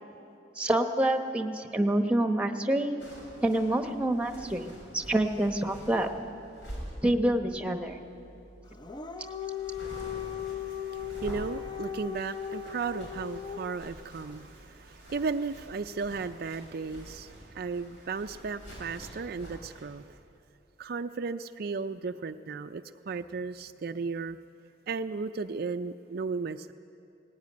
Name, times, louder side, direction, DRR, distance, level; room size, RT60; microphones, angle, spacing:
voice 1, 0.6-3.0 3.4-6.1 7.0-8.0, right 1 dB, 5° right, 6 dB, 1.0 m, -27 dB
sound 1, 3.0-19.8, equal, 85° left, 6.7 m, -47 dB
Dog, 8.7-13.9, left 9 dB, 25° left, 0.6 m, -38 dB
voice 2, 9.9-20.2 20.8-24.4 24.9-26.7, right 4 dB, 55° right, 7 dB, 0.4 m, -35 dB
18.5 x 17.0 x 9.5 m, 2.8 s
head